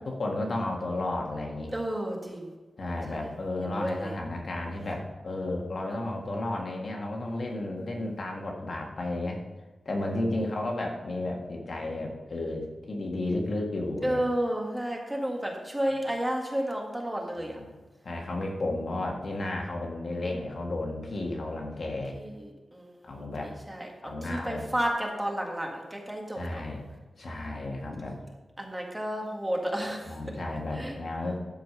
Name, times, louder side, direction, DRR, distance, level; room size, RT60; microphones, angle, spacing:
voice 1, 0.0-1.7 2.8-9.4 9.9-14.3 17.4-17.7 18.0-22.2 23.0-23.5 24.0-24.6 26.3-26.9 27.2-28.2 30.1-31.4, left 2 dB, 55° left, 0 dB, 1.8 m, -33 dB
voice 2, 1.7-2.5 3.1-3.3 3.6-4.1 7.8-8.1 14.0-17.6 22.1-23.9 24.2-26.6 28.6-30.2 30.7-30.9, right 1 dB, 10° right, 0 dB, 1.8 m, -32 dB
12.5 x 5.0 x 5.6 m, 1.2 s
wide cardioid pair, 115°, 0 cm